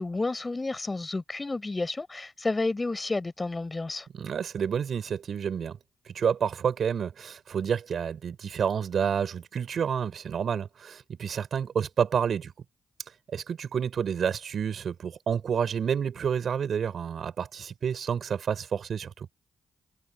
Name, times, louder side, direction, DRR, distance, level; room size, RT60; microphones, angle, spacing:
voice 1, 0.0-4.1, left 3 dB, 30° left, 5.6 m, -31 dB
voice 2, 4.1-5.8 6.1-12.5 13.3-19.3, right 7 dB, 65° right, 5.5 m, -29 dB
supercardioid pair, 50°, 0 cm